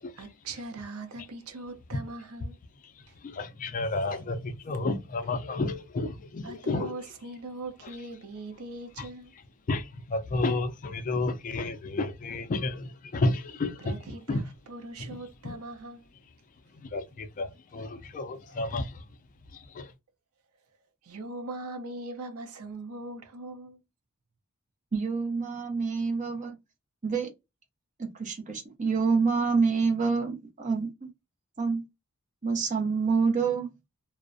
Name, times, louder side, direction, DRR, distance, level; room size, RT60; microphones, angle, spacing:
voice 1, 0.2-2.6 3.1-3.2 4.1-4.2 6.4-9.3 13.8-16.1 18.5-18.6 21.0-23.8, right 2 dB, 80° right, 0.6 m, -41 dB
voice 2, 3.2-6.9 9.7-13.9 14.3-14.4 16.8-18.9 19.7-19.9, left 2 dB, 35° left, 0.4 m, -31 dB
voice 3, 24.9-26.6 27.0-27.3 28.0-31.1 31.6-31.8 32.4-33.7, right 5 dB, 35° right, 0.6 m, -27 dB
2.4 x 2.0 x 2.5 m
head